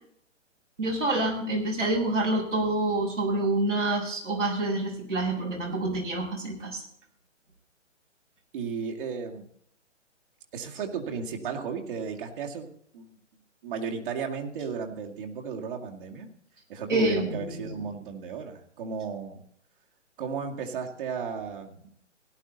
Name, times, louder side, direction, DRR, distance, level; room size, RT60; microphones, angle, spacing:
voice 1, 0.8-6.8 16.9-17.9, right 2 dB, 80° right, -1 dB, 7.0 m, -27 dB
voice 2, 8.5-9.5 10.5-12.7 12.9-13.2 13.6-16.3 16.7-19.4 20.2-21.9, right 6 dB, 45° right, 1 dB, 2.3 m, -34 dB
17.0 x 11.5 x 4.0 m, 0.67 s
figure-of-eight pair, 135°, 36 cm